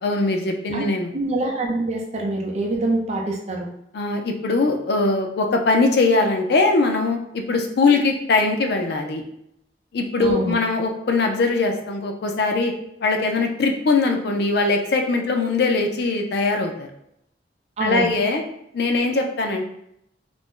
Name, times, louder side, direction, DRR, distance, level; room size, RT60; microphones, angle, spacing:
voice 1, 0.0-1.1 3.9-9.2 9.9-12.7 13.0-16.9 17.8-18.4 18.7-19.6, left 3 dB, 65° left, 3 dB, 0.5 m, -21 dB
voice 2, 1.1-3.7 10.2-10.6 17.8-18.1, right 2 dB, 40° right, 0 dB, 0.5 m, -25 dB
2.5 x 2.1 x 3.6 m, 0.76 s
head